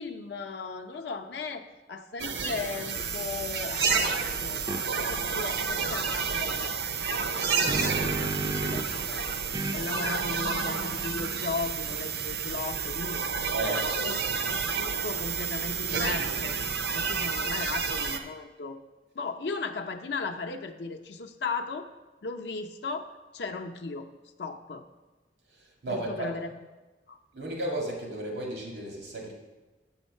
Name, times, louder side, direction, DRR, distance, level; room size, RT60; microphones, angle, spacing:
voice 1, 0.0-6.7 7.6-9.2 9.7-14.2 14.5-16.6 16.9-18.8 19.1-21.9 22.2-24.1 24.4-24.8 25.9-26.5 27.1-27.2, left 4 dB, 70° left, 5 dB, 0.6 m, -37 dB
sound 1, 2.2-18.2, right 5 dB, 70° right, 0.7 m, -30 dB
sound 2, 4.7-4.8 7.2-9.0 9.5-12.9, right 2 dB, 20° right, 0.4 m, -36 dB
voice 2, 8.3-8.8 13.5-14.3 25.8-26.3 27.3-29.3, right 1 dB, 90° right, -1 dB, 1.9 m, -34 dB
7.1 x 7.0 x 5.4 m, 1.2 s
head